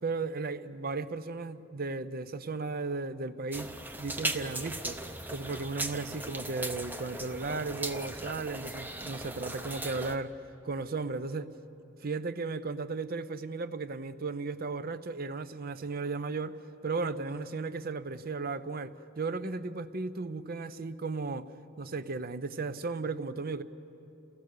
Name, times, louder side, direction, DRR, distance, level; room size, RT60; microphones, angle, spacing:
voice 1, 0.0-3.7 4.0-5.0 5.3-10.4 10.6-11.5 12.0-16.6 16.8-21.5 21.8-23.6, right 3 dB, 45° right, 13 dB, 0.7 m, -35 dB
sound 1, 3.5-10.2, right 2 dB, 10° right, 0.7 m, -38 dB
29.0 x 17.0 x 6.7 m, 2.9 s
head